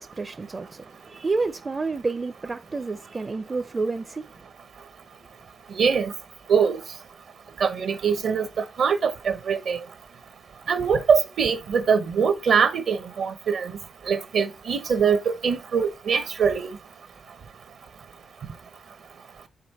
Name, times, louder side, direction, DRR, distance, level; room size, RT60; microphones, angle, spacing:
voice 1, 0.0-4.3, right 3 dB, 35° right, 0.5 m, -29 dB
voice 2, 5.7-6.1 6.5-6.8 7.6-9.8 10.7-13.7 14.1-16.7, right 6 dB, 75° right, 1.0 m, -23 dB
5.2 x 4.5 x 4.2 m
cardioid pair, 55°, 0 cm